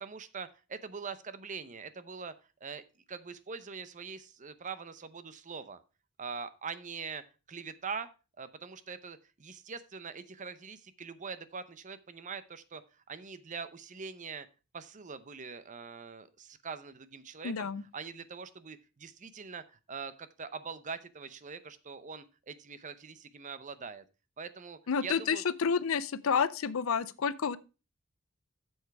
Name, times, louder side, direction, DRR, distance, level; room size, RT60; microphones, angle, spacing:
voice 1, 0.0-2.3 2.6-2.8 3.1-5.8 6.2-7.2 7.5-8.1 8.4-14.5 14.7-24.0 24.4-25.4, right 5 dB, 35° right, 0.7 m, -43 dB
voice 2, 17.4-17.8 24.9-27.6, left 6 dB, 70° left, 0.5 m, -29 dB
8.0 x 7.2 x 4.6 m
head